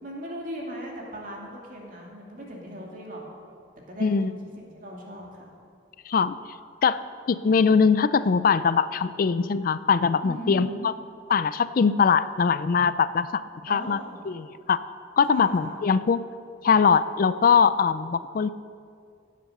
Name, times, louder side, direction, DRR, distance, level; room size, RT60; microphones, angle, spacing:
voice 1, 0.0-3.2 3.9-5.5 10.2-10.9 13.7-14.2 15.3-15.9, equal, 50° right, -2 dB, 2.6 m, -38 dB
voice 2, 4.0-4.3 6.1-6.4 6.8-7.0 7.3-11.0 11.3-14.0 14.3-14.8 15.2-16.2 16.6-18.5, left 6 dB, 50° left, 15 dB, 0.4 m, -22 dB
17.0 x 7.6 x 6.6 m, 2.3 s
head